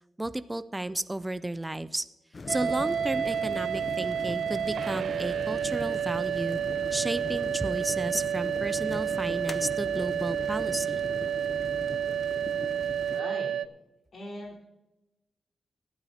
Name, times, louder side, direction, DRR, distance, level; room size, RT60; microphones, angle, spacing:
voice 1, 0.2-2.0 2.5-6.6 6.9-11.0, right 1 dB, 15° right, 13 dB, 0.4 m, -33 dB
sound 1, 2.3-13.2, left 3 dB, 40° left, 0.6 m, -40 dB
sound 2, 2.5-13.7, right 9 dB, 80° right, 0.4 m, -30 dB
voice 2, 13.1-13.6 14.1-14.6, left 1 dB, 60° left, -2 dB, 4.2 m, -40 dB
18.0 x 12.0 x 2.8 m, 0.95 s
wide cardioid pair, 125°, 0 cm